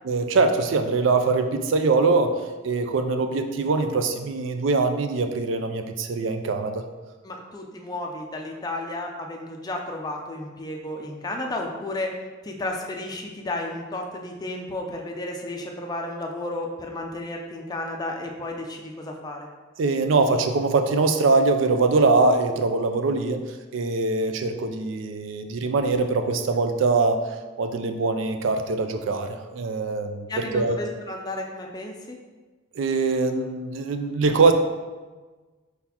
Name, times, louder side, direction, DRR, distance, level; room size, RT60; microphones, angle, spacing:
voice 1, 0.0-6.8 19.8-23.4 23.7-27.3 27.6-30.8 32.8-34.5, right 3 dB, 65° right, 7 dB, 0.4 m, -23 dB
voice 2, 7.2-12.2 12.4-19.5 30.3-32.2, left 2 dB, 20° left, 1 dB, 0.4 m, -33 dB
4.0 x 4.0 x 2.9 m, 1.3 s
head